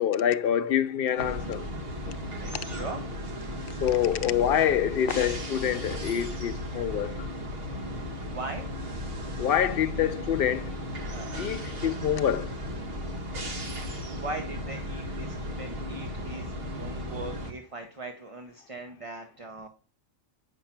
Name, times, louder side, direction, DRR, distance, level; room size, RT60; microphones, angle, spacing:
voice 1, 0.0-1.6 3.8-7.1 9.4-10.7 11.4-12.5, left 9 dB, 60° left, 0.6 m, -26 dB
sound 1, 1.2-17.5, equal, 50° right, 1.5 m, -35 dB
voice 2, 2.4-3.0 6.9-7.2 8.3-8.7 9.9-10.0 11.1-11.3 14.1-19.7, right 2 dB, 30° right, 0.7 m, -40 dB
8.9 x 5.5 x 5.8 m
omnidirectional pair, 1.4 m